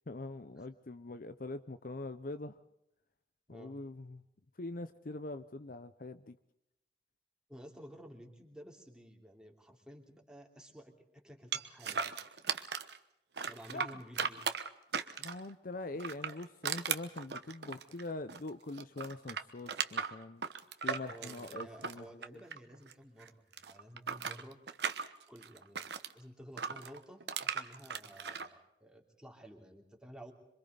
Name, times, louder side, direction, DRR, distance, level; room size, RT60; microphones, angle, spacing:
voice 1, 0.1-2.6 3.5-4.2 4.6-6.4 13.7-13.9 15.2-20.4 20.8-22.4, left 2 dB, 50° left, 11 dB, 0.7 m, -43 dB
voice 2, 7.5-12.2 13.4-14.4 21.1-24.6 25.3-30.3, equal, 5° right, 1 dB, 3.1 m, -53 dB
sound 1, 11.5-13.0 13.4-15.5 16.0-18.5 18.7-22.9 23.2-26.1 26.6-28.5, right 6 dB, 70° right, 1.1 m, -37 dB
27.0 x 24.5 x 4.0 m, 0.85 s
head